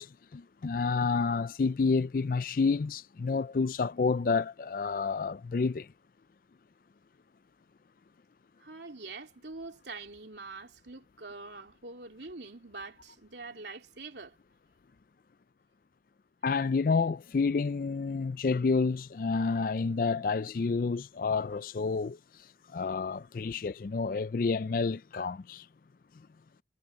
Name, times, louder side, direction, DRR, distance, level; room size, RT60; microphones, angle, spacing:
voice 1, 0.0-5.9 16.4-22.2 22.7-25.7, left 4 dB, 50° left, 0.4 m, -29 dB
voice 2, 8.6-14.4, right 3 dB, 75° right, 3.0 m, -44 dB
head